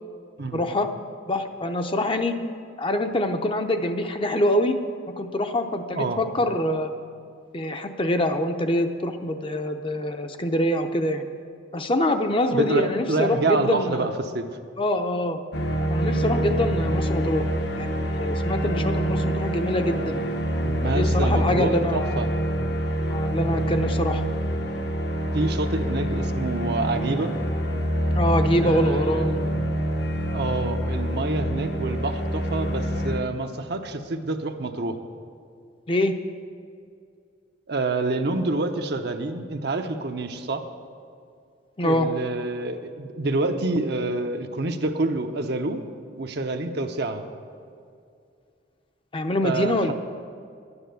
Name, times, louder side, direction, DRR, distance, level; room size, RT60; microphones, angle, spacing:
voice 1, 0.5-0.9 1.3-2.3 2.8-4.8 5.2-6.9 7.5-11.3 11.7-14.1 14.8-15.4 15.8-17.4 17.8-20.2 20.8-22.2 23.1-24.2 28.1-29.5 35.9-36.1 41.8-42.1 49.1-49.9, left 1 dB, 30° left, 6 dB, 0.6 m, -25 dB
voice 2, 12.5-14.4 16.8-17.0 20.6-22.3 25.3-27.3 28.6-29.5 30.3-35.0 37.7-40.6 41.8-45.8 46.2-47.2 49.4-49.9, right 2 dB, 60° right, 6 dB, 0.8 m, -27 dB
sound 1, 15.5-33.2, equal, 60° left, 0.9 m, -26 dB
11.5 x 9.7 x 6.9 m, 2.3 s
head